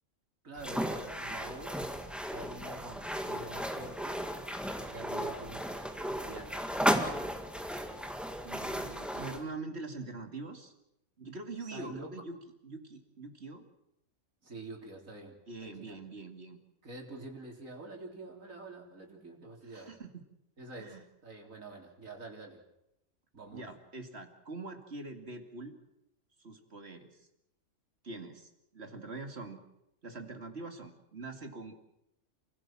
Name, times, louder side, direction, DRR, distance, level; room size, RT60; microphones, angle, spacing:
voice 1, 0.4-1.9 2.3-4.2 4.7-7.5 11.6-12.1 14.4-15.4 15.6-16.0 16.8-19.9 20.6-22.6 23.3-23.7, right 3 dB, 75° right, 1 dB, 4.0 m, -47 dB
sound 1, 0.6-9.4, equal, ahead, 1.9 m, -35 dB
voice 2, 8.4-10.7 11.2-13.6 15.5-16.6 19.6-20.2 20.8-21.0 23.5-25.8 26.4-27.3 28.0-29.6 30.0-31.8, right 3 dB, 50° right, 6 dB, 2.6 m, -44 dB
28.5 x 16.5 x 7.5 m, 0.83 s
omnidirectional pair, 1.4 m